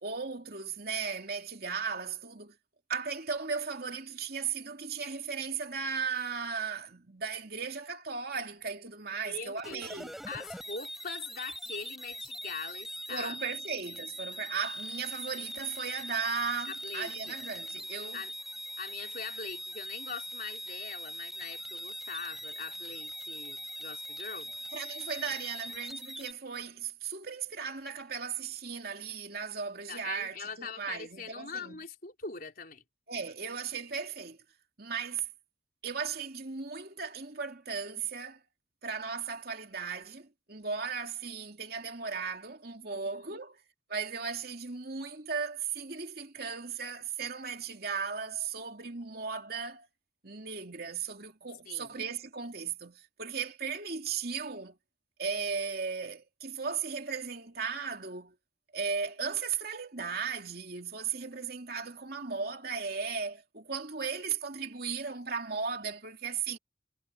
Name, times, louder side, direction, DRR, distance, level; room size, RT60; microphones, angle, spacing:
voice 1, 0.0-2.6 2.9-10.1 13.1-18.2 24.7-31.8 33.1-34.4 34.8-35.3 35.8-38.4 38.8-43.6 43.9-49.9 50.2-54.8 55.2-58.3 58.7-66.6, right 5 dB, 55° right, 3.0 m, -36 dB
voice 2, 9.2-9.8 10.3-13.4 16.7-17.3 18.1-18.3 18.8-24.5 29.9-32.8 42.8-43.4 51.6-51.9, left 5 dB, 50° left, 4.2 m, -42 dB
sound 1, 9.6-26.3, equal, ahead, 4.4 m, -42 dB
head